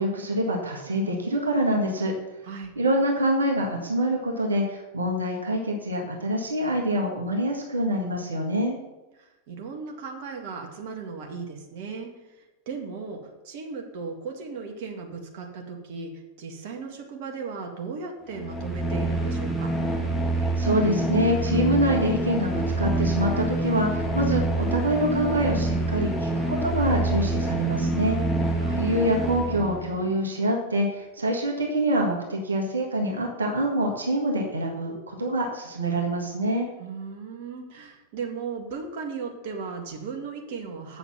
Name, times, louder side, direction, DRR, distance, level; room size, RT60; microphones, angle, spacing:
voice 1, 0.0-2.1 2.7-8.7 20.4-28.2 28.8-36.7, equal, 75° right, 0 dB, 1.6 m, -25 dB
voice 2, 2.4-2.8 9.2-12.1 12.7-16.1 16.4-19.7 28.6-28.9 36.8-41.0, right 5 dB, 50° right, 2 dB, 1.8 m, -36 dB
sound 1, 18.3-30.0, right 2 dB, 10° left, 1.9 m, -26 dB
7.7 x 7.0 x 7.2 m, 1.1 s
figure-of-eight pair, 90°, 0 cm